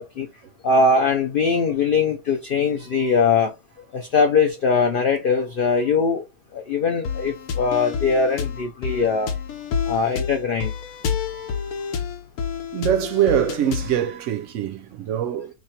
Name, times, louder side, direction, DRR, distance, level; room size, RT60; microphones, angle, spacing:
voice 1, 0.6-3.5 3.9-6.2 6.5-9.3 9.9-10.7, left 4 dB, 65° left, 0.5 m, -21 dB
sound 1, 7.0-14.0, left 7 dB, 80° left, 1.1 m, -29 dB
voice 2, 11.1-11.9 12.7-15.5, right 10 dB, 70° right, 0.8 m, -24 dB
3.1 x 2.4 x 4.1 m
omnidirectional pair, 1.5 m